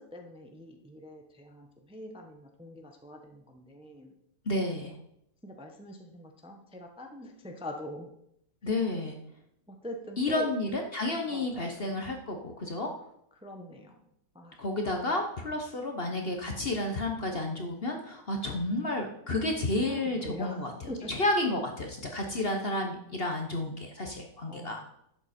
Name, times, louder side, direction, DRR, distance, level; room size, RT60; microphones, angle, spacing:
voice 1, 0.0-4.1 5.4-8.1 9.7-10.4 11.3-11.8 13.4-14.0 14.3-14.6 19.8-20.6 20.9-21.1 22.2-22.4 24.5-24.9, left 1 dB, 5° right, 3 dB, 0.8 m, -43 dB
voice 2, 4.5-4.9 8.6-9.2 10.2-12.9 14.6-20.7 21.1-24.9, left 2 dB, 40° left, 3 dB, 1.1 m, -31 dB
11.5 x 8.0 x 4.4 m, 0.76 s
omnidirectional pair, 1.8 m